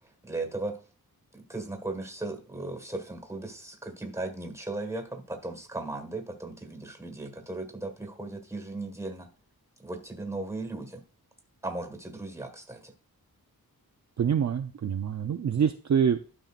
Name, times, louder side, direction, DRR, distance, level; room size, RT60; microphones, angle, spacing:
voice 1, 0.2-0.8 1.3-9.3 9.8-11.0 11.6-12.9, right 2 dB, 5° right, 5 dB, 1.5 m, -37 dB
voice 2, 14.2-16.3, right 7 dB, 50° right, 5 dB, 0.5 m, -26 dB
12.0 x 5.5 x 2.4 m, 0.39 s
wide cardioid pair, 135°, 37 cm